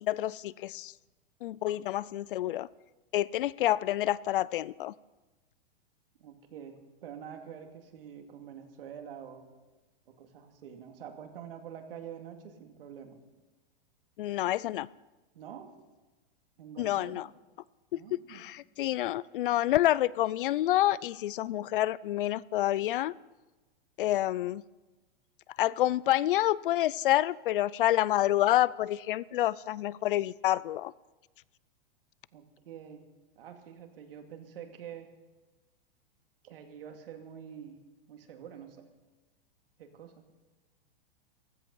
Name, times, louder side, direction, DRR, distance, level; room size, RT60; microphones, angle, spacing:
voice 1, 0.0-0.9 1.4-2.7 3.1-4.9 14.2-14.9 16.8-17.3 17.9-23.2 24.0-24.6 25.6-30.9, left 14 dB, 65° left, 22 dB, 0.5 m, -28 dB
voice 2, 6.2-9.5 10.1-13.2 15.3-15.7 16.6-17.2 17.9-18.4 32.3-33.1 33.4-35.1 36.4-37.8 38.1-38.9 39.8-40.2, right 8 dB, 75° right, 4 dB, 2.5 m, -46 dB
15.5 x 14.0 x 5.5 m, 1.2 s
supercardioid pair, 170°, 29 cm